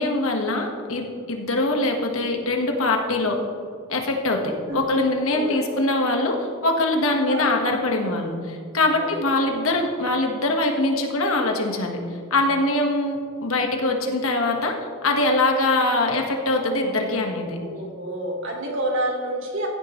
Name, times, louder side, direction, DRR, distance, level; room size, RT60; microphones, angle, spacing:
voice 1, 0.0-3.4 3.9-12.0 12.3-14.8 15.0-17.6, left 2 dB, 90° left, 2 dB, 1.5 m, -23 dB
voice 2, 5.3-5.7 7.3-7.5 8.9-9.3 17.6-19.7, right 1 dB, 65° right, -1 dB, 2.4 m, -28 dB
15.5 x 9.4 x 3.2 m, 2.2 s
head